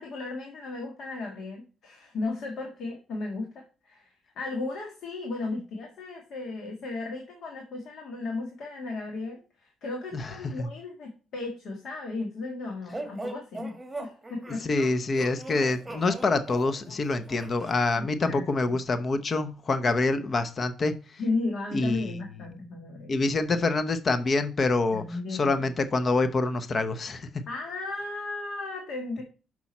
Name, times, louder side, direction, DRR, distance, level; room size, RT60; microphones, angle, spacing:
voice 1, 0.0-14.6 17.9-18.8 21.2-23.1 24.9-25.7 27.5-29.2, left 3 dB, 65° left, 2 dB, 1.7 m, -35 dB
voice 2, 10.1-10.7 14.6-21.2 21.7-22.2 23.1-25.0 25.3-27.3, left 3 dB, 40° left, 11 dB, 0.8 m, -26 dB
sound 1, 12.9-17.7, right 2 dB, 10° right, 2.0 m, -40 dB
6.1 x 5.7 x 4.2 m, 0.34 s
cardioid pair, 90°, 0 cm